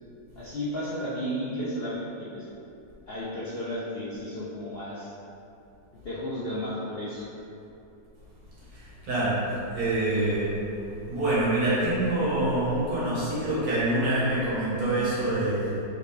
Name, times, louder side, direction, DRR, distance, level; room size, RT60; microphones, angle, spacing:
voice 1, 0.4-2.5 3.1-5.1 6.0-7.3, equal, 60° left, -10 dB, 0.6 m, -33 dB
voice 2, 8.7-9.4 9.7-10.6 11.1-15.8, right 1 dB, 55° right, -10 dB, 1.9 m, -26 dB
5.0 x 2.9 x 3.3 m, 2.8 s
omnidirectional pair, 1.9 m